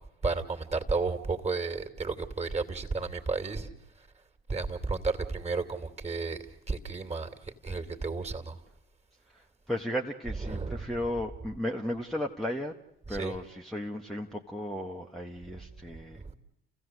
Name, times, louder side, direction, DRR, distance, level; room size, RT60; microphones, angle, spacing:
voice 1, 0.2-3.7 4.0-4.1 4.5-8.6 10.3-11.0 13.1-13.4 16.1-16.3, right 4 dB, 20° right, 2.5 m, -33 dB
voice 2, 9.3-12.7 13.1-16.2, left 1 dB, ahead, 1.4 m, -35 dB
29.0 x 15.5 x 8.1 m
hypercardioid pair, 60°, 31 cm